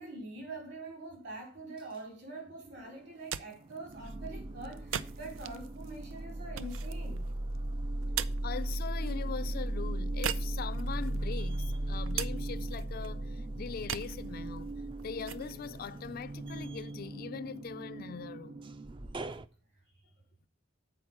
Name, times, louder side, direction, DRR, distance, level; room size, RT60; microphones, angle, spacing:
voice 1, 0.0-7.3, right 2 dB, 65° right, 4.1 m, -44 dB
sound 1, 2.4-3.2 3.6-19.5, right 1 dB, 25° right, 0.4 m, -37 dB
sound 2, 3.0-17.0, right 9 dB, 85° right, 0.5 m, -44 dB
voice 2, 8.4-14.7 15.0-18.7, left 6 dB, 50° left, 0.3 m, -41 dB
7.8 x 4.6 x 7.2 m
head